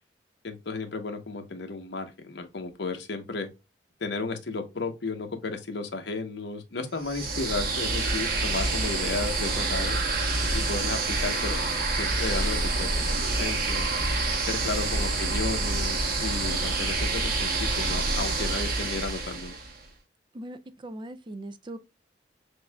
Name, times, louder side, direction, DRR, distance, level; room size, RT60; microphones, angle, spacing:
voice 1, 0.4-3.5 4.0-10.0 10.5-11.6 11.9-13.9 14.4-19.5, left 3 dB, 70° left, 0.9 m, -34 dB
sound 1, 7.0-19.8, right 3 dB, 55° right, 1.1 m, -27 dB
voice 2, 14.6-15.0 20.3-21.8, right 1 dB, 25° right, 0.4 m, -40 dB
6.2 x 2.7 x 2.2 m
head